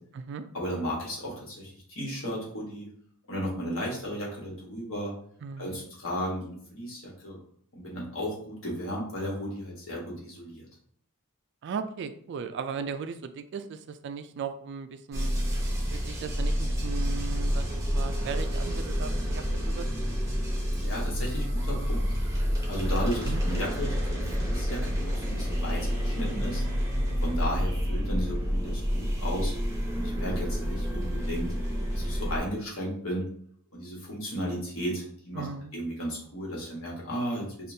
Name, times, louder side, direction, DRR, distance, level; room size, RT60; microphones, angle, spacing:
voice 1, 0.5-2.9 3.3-5.1 5.6-7.4 7.7-10.7 20.7-22.1 22.6-26.6 27.2-29.5 29.9-31.5 31.9-33.3 33.7-35.5 35.7-37.7, equal, 65° left, -3 dB, 1.3 m, -34 dB
voice 2, 5.4-5.8 11.6-15.3 15.9-20.1 23.3-23.4 35.3-35.7, right 6 dB, 55° right, 10 dB, 0.3 m, -37 dB
sound 1, 15.1-32.4, equal, 15° right, 0.8 m, -29 dB
5.2 x 2.4 x 2.7 m, 0.62 s
head